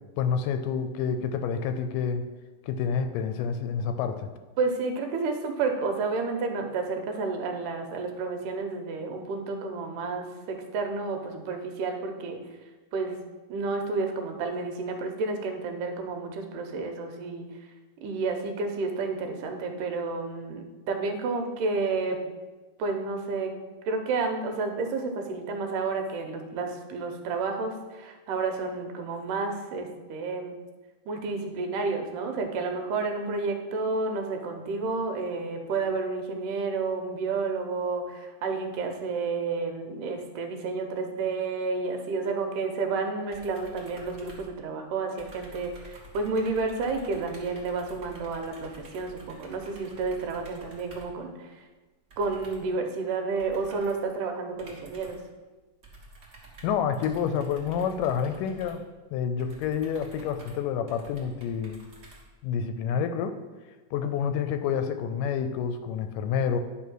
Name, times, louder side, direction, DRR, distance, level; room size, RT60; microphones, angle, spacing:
voice 1, 0.2-2.2 2.7-4.3 56.6-58.8 59.1-61.8 62.4-63.4 63.9-66.6, left 7 dB, 80° left, 9 dB, 2.1 m, -28 dB
voice 2, 4.6-12.4 12.9-13.2 13.5-17.5 18.0-22.2 22.8-23.5 23.9-30.6 31.1-51.6 52.2-55.2, right 4 dB, 80° right, 5 dB, 2.4 m, -30 dB
sound 1, 43.3-44.9 45.2-51.2 52.1-52.8 53.4-54.1 54.6-55.3 55.8-62.7, right 1 dB, 35° right, 1.3 m, -49 dB
10.5 x 3.5 x 6.1 m, 1.2 s
omnidirectional pair, 3.9 m